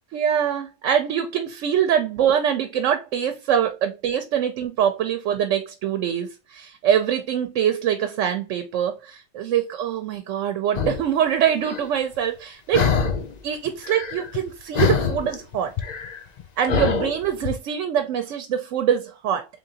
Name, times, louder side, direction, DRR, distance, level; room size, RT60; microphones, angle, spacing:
voice 1, 0.1-13.0 13.4-15.7 16.6-19.5, right 9 dB, 85° right, 0.9 m, -24 dB
sound 1, 10.7-11.1 11.6-11.9 12.7-13.4 13.6-14.5 14.7-17.5, left 6 dB, 50° left, 0.5 m, -24 dB
3.7 x 3.3 x 2.8 m
omnidirectional pair, 1.3 m